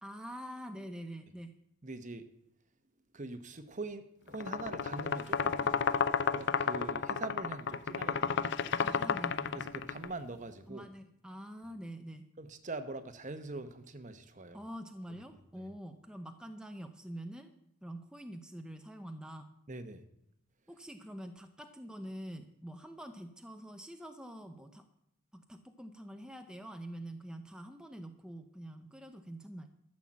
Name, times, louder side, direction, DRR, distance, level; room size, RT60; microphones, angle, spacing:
voice 1, 0.0-1.5 8.8-9.6 10.7-12.3 14.5-17.5 17.8-19.5 20.7-24.8 25.3-29.7, equal, 5° right, 5 dB, 0.7 m, -46 dB
voice 2, 1.8-2.3 3.1-5.8 6.3-8.4 9.5-10.8 12.4-14.6 15.5-15.7 19.7-20.0, right 2 dB, 35° right, 10 dB, 0.9 m, -43 dB
sound 1, 4.3-10.1, left 6 dB, 50° left, 0.5 m, -32 dB
13.0 x 7.5 x 7.4 m, 0.77 s
head